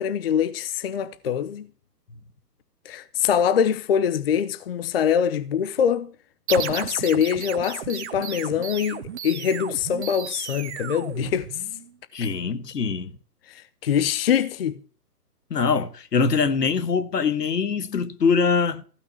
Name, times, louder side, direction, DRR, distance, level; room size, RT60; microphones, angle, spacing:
voice 1, 0.0-1.7 2.8-6.1 6.5-11.5 13.5-14.8, left 8 dB, 35° left, 0.7 m, -24 dB
sound 1, 6.5-11.9, right 9 dB, 45° right, 1.3 m, -34 dB
voice 2, 12.1-13.1 15.5-18.8, left 5 dB, 75° left, 1.5 m, -23 dB
15.0 x 6.0 x 9.3 m
hypercardioid pair, 145°, 49 cm